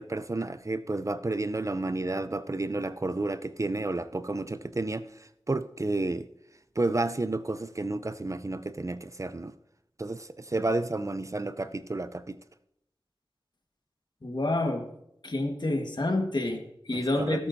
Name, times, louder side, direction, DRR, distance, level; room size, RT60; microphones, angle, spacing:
voice 1, 0.0-6.3 6.8-9.5 10.0-12.4 16.9-17.4, right 2 dB, 35° right, 0.5 m, -31 dB
voice 2, 14.2-14.8 15.2-17.5, left 2 dB, 55° left, 1.5 m, -28 dB
17.5 x 8.6 x 2.7 m
wide cardioid pair, 50°, 9 cm